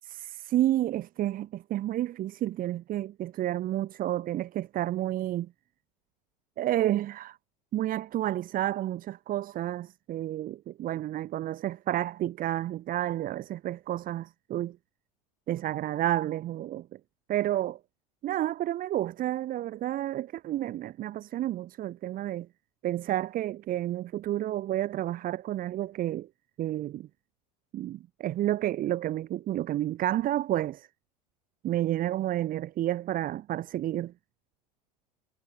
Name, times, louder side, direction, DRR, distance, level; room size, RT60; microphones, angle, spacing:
voice 1, 0.1-5.5 6.6-7.4 7.7-14.8 15.5-16.9 17.3-17.8 18.2-22.5 22.8-26.3 26.6-27.1 27.7-30.9 31.6-34.1, right 13 dB, 40° right, 7.3 m, -30 dB
figure-of-eight pair, 80°, 21 cm